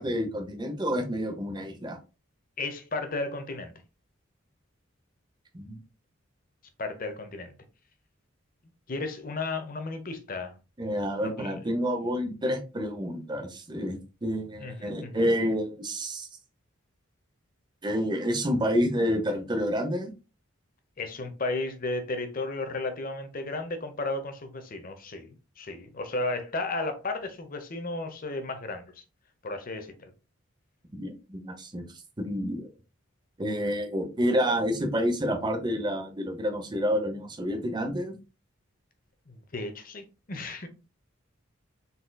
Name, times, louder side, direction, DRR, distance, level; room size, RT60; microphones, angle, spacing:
voice 1, 0.0-2.0 5.5-5.8 10.8-16.3 17.8-20.1 31.0-31.9 32.2-32.7 33.4-38.1, equal, 20° right, 0.7 m, -29 dB
voice 2, 2.6-3.7 6.8-7.5 8.9-10.5 11.2-11.5 14.6-15.2 21.0-28.9 29.4-30.1 39.3-40.7, left 2 dB, 45° left, 0.8 m, -34 dB
4.1 x 3.8 x 2.2 m
head